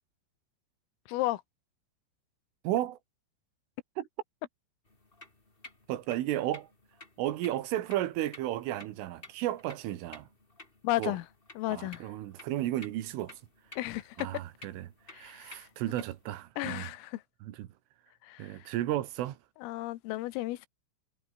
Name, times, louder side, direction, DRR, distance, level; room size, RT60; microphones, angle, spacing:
voice 1, 1.1-1.4 10.8-11.3 11.6-12.1 13.8-14.2 15.1-15.7 16.6-17.2 18.2-18.7 19.6-20.7, left 17 dB, 90° left, 3.8 m, -34 dB
voice 2, 2.6-3.0 4.0-4.1 5.9-6.7 7.2-10.3 11.0-11.2 11.7-13.4 14.2-16.9 17.4-17.7 18.4-19.4, right 14 dB, 75° right, 4.0 m, -33 dB
sound 1, 4.9-16.3, left 2 dB, 15° left, 2.3 m, -54 dB
omnidirectional pair, 5.9 m